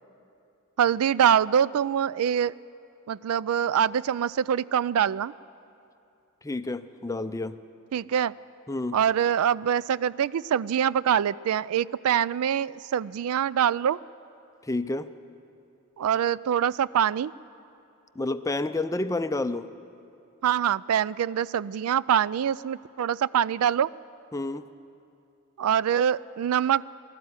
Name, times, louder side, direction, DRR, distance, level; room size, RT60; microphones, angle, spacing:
voice 1, 0.8-2.5 3.1-5.3 7.9-8.3 8.9-14.0 16.0-17.3 20.4-23.9 25.6-26.8, right 9 dB, 85° right, 20 dB, 0.4 m, -24 dB
voice 2, 6.4-7.6 8.7-9.0 14.6-15.1 18.2-19.7 24.3-24.7, left 2 dB, 15° left, 11 dB, 0.5 m, -29 dB
20.0 x 13.5 x 9.7 m, 2.7 s
head